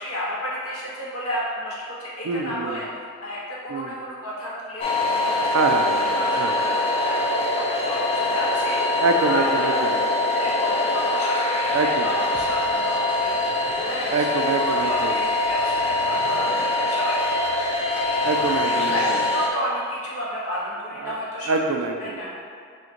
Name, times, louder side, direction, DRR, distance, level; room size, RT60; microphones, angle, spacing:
voice 1, 0.0-2.9 3.2-5.8 6.2-9.8 10.3-13.4 13.9-17.4 17.9-18.0 18.4-18.5 18.9-21.6 22.0-22.3, equal, 85° left, -6 dB, 0.8 m, -32 dB
voice 2, 2.2-2.8 3.7-4.0 5.5-6.6 9.0-10.0 11.7-12.1 14.1-15.2 18.2-19.2 21.0-21.2 21.5-22.2, right 3 dB, 80° right, 4 dB, 0.4 m, -25 dB
sound 1, 4.8-19.5, left 2 dB, 25° left, 0.3 m, -23 dB
6.1 x 2.1 x 3.0 m, 2.3 s
head